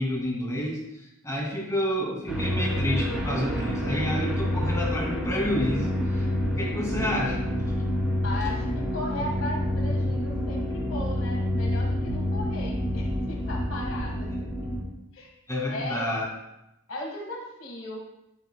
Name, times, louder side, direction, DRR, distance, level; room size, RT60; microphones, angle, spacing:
voice 1, 0.0-7.5 7.9-8.1 15.5-16.3, left 1 dB, 15° left, -3 dB, 2.1 m, -29 dB
sound 1, 2.3-14.8, left 1 dB, 5° right, 3.0 m, -28 dB
voice 2, 8.2-14.7 15.1-15.3 15.7-16.2 16.9-18.0, left 1 dB, 70° left, -1 dB, 1.7 m, -37 dB
11.5 x 8.6 x 2.3 m, 0.87 s
head